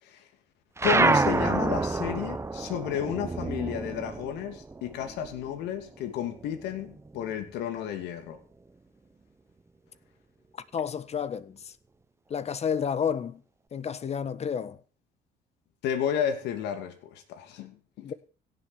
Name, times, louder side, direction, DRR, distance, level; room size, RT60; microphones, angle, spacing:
voice 1, 0.8-8.4 15.8-18.1, left 9 dB, 85° left, 2.8 m, -32 dB
sound 1, 0.8-5.6 6.0-7.4, right 3 dB, 15° right, 1.0 m, -28 dB
voice 2, 10.7-11.7 12.3-13.4 13.7-14.8 18.0-18.1, left 7 dB, 40° left, 1.3 m, -30 dB
17.0 x 7.8 x 7.1 m
cardioid pair, 110°, 17 cm